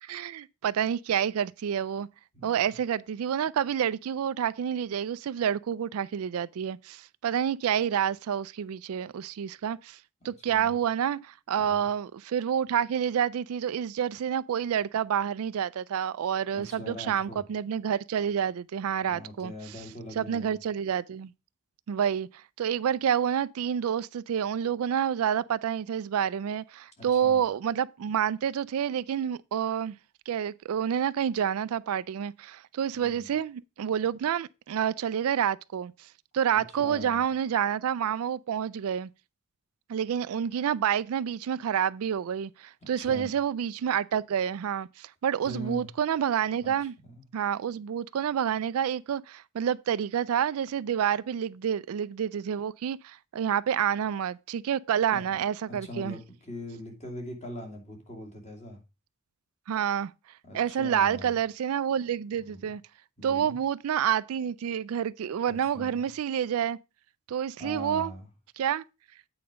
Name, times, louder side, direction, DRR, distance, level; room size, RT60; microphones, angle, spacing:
voice 1, 0.0-2.1 2.4-10.0 10.2-19.5 20.2-21.3 21.9-30.0 30.3-36.1 36.3-39.1 39.9-46.9 47.3-56.2 59.7-60.1 60.5-62.8 63.2-66.8 67.3-68.1 68.6-68.8, right 8 dB, 65° right, 0.3 m, -28 dB
voice 2, 2.3-2.7 10.2-10.8 11.7-11.9 16.5-17.4 19.0-20.6 27.0-27.4 32.9-33.3 36.5-37.2 42.8-43.3 45.4-45.9 46.6-46.7 47.0-47.2 55.1-55.2 55.7-58.8 60.4-61.4 62.5-62.7 63.2-63.6 65.5-66.1 67.6-68.3, left 1 dB, 30° left, 2.4 m, -42 dB
8.7 x 4.8 x 5.0 m
head